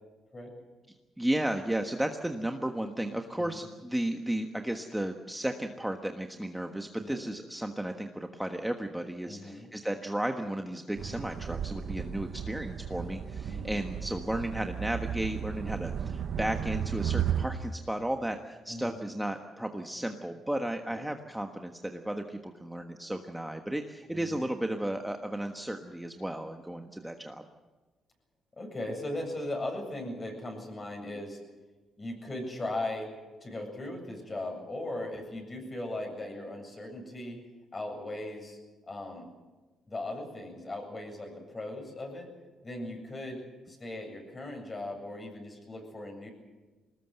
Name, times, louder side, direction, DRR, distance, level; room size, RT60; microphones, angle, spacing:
voice 1, 1.2-27.5, right 1 dB, 5° right, 5 dB, 1.4 m, -34 dB
voice 2, 9.3-9.7 13.5-13.7 18.7-19.0 20.9-21.0 24.1-24.4 28.6-31.4 32.0-33.1 33.4-37.4 37.7-38.6 38.9-39.3 39.9-42.3 42.6-43.4 43.7-46.3, left 1 dB, 30° left, 3 dB, 7.7 m, -38 dB
sound 1, 11.0-17.5, right 8 dB, 60° right, 1.2 m, -34 dB
21.5 x 19.5 x 8.0 m, 1.2 s
cardioid pair, 90°, 0 cm